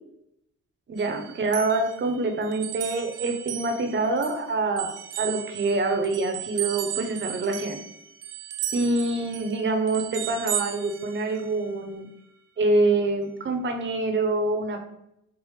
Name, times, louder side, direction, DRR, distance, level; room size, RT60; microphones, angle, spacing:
voice 1, 0.9-7.8 8.7-12.1 12.6-14.8, right 2 dB, 40° right, 4 dB, 0.8 m, -26 dB
sound 1, 1.0-4.4 4.8-11.7, right 11 dB, 90° right, 0.6 m, -35 dB
4.8 x 2.4 x 3.2 m, 0.78 s
cardioid pair, 90°, 30 cm